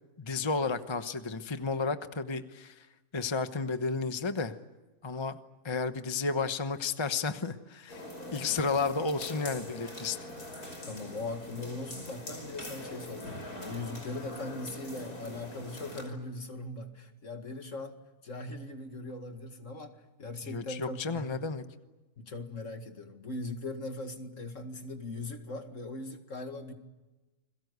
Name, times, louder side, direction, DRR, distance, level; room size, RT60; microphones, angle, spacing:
voice 1, 0.2-2.8 3.1-4.5 5.0-5.4 5.6-8.1 8.3-10.2 20.4-21.6, left 4 dB, 20° left, 9 dB, 1.0 m, -32 dB
sound 1, 7.9-16.1, left 1 dB, 85° left, 6.1 m, -43 dB
voice 2, 10.9-18.0 18.2-19.9 20.2-21.4 22.2-26.7, left 2 dB, 55° left, 6 dB, 2.4 m, -40 dB
29.5 x 22.5 x 8.2 m, 1.1 s
omnidirectional pair, 1.6 m